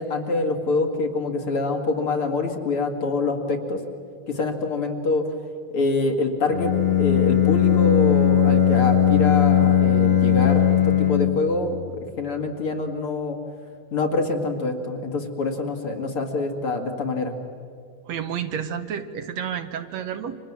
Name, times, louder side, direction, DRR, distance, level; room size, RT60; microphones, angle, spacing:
voice 1, 0.0-3.8 4.3-5.2 5.7-6.7 7.0-11.8 12.2-13.4 13.9-17.3, left 3 dB, 50° left, 3 dB, 3.0 m, -25 dB
Bowed string instrument, 6.5-11.6, left 9 dB, 25° left, 1.6 m, -18 dB
voice 2, 18.1-20.4, right 8 dB, 70° right, 8 dB, 2.2 m, -30 dB
30.0 x 26.0 x 7.5 m, 2.3 s
omnidirectional pair, 3.3 m